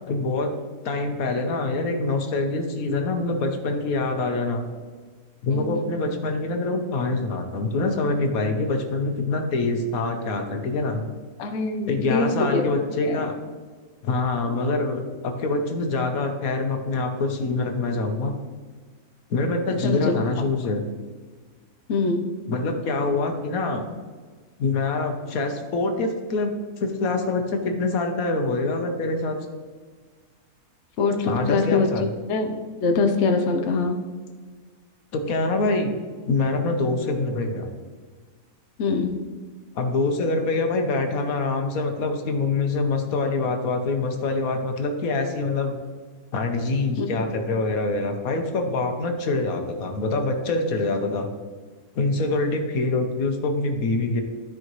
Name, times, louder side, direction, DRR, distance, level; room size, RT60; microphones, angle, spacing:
voice 1, 0.1-0.5 0.8-4.7 5.4-11.0 11.9-13.3 14.0-18.3 19.3-20.8 22.5-23.9 24.6-29.4 31.2-32.1 35.1-35.9 36.3-37.7 39.7-45.8 46.3-51.3 52.0-54.2, left 3 dB, 75° left, 4 dB, 1.4 m, -25 dB
voice 2, 5.5-5.8 11.4-12.6 13.1-13.2 19.8-20.1 21.9-22.2 31.0-31.9 32.3-34.0 38.8-39.2 47.0-47.4, left 4 dB, 60° left, 4 dB, 0.9 m, -23 dB
13.0 x 4.9 x 3.1 m, 1.5 s
omnidirectional pair, 1.5 m